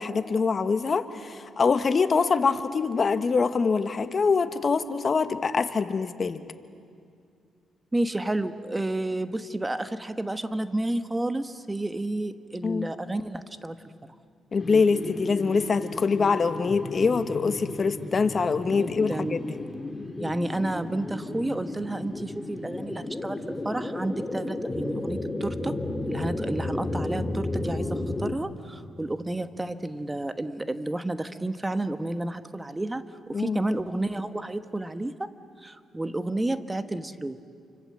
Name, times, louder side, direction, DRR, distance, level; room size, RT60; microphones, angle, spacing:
voice 1, 0.0-6.4 12.6-12.9 14.5-19.6 33.3-33.6, left 5 dB, 45° left, 10 dB, 1.4 m, -24 dB
voice 2, 7.9-13.8 18.8-19.5 20.2-25.8 26.1-35.3 35.6-37.4, right 1 dB, 15° right, 10 dB, 1.3 m, -31 dB
sound 1, 14.6-28.3, left 2 dB, 15° left, 2.5 m, -33 dB
29.0 x 25.0 x 7.8 m, 2.3 s
cardioid pair, 75°, 0 cm